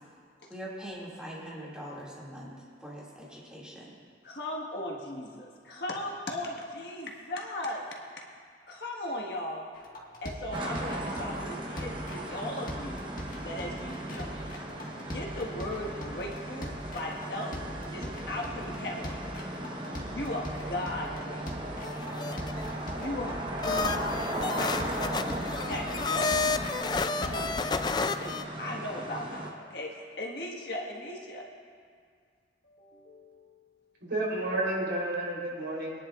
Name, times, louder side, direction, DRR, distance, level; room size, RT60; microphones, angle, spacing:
voice 1, 0.5-2.5 2.8-4.0, equal, 5° right, -7 dB, 2.3 m, -42 dB
voice 2, 4.2-7.8 8.7-9.7 10.2-13.1 13.4-14.3 15.0-17.6 17.9-19.2 20.1-21.7 23.0-24.8 25.7-27.9 28.2-31.5 32.6-33.6, left 1 dB, 65° left, -1 dB, 1.6 m, -38 dB
sound 1, 9.8-28.0, equal, 50° left, 1.7 m, -42 dB
sound 2, 10.5-29.5, right 1 dB, 25° right, 1.1 m, -37 dB
sound 3, 21.8-22.8 23.6-28.4, left 4 dB, 25° left, 0.3 m, -31 dB
voice 3, 34.0-36.0, right 1 dB, 90° right, -4 dB, 3.6 m, -31 dB
23.5 x 10.5 x 2.5 m, 2.1 s
head